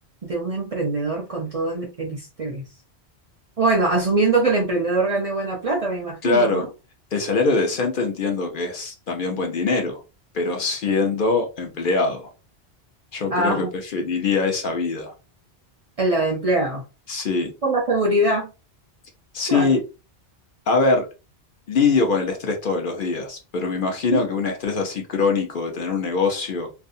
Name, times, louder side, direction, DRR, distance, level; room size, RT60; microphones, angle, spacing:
voice 1, 0.2-2.6 3.6-6.7 13.3-13.7 16.0-16.8 17.6-18.5 19.5-19.8 24.1-24.2, right 2 dB, 45° right, 0 dB, 0.5 m, -23 dB
voice 2, 6.2-6.7 7.1-10.0 10.3-12.3 13.1-15.1 17.1-17.5 19.3-19.8 20.7-21.1 21.7-26.7, left 4 dB, 55° left, 3 dB, 0.8 m, -23 dB
2.5 x 2.3 x 2.6 m, 0.29 s
omnidirectional pair, 1.1 m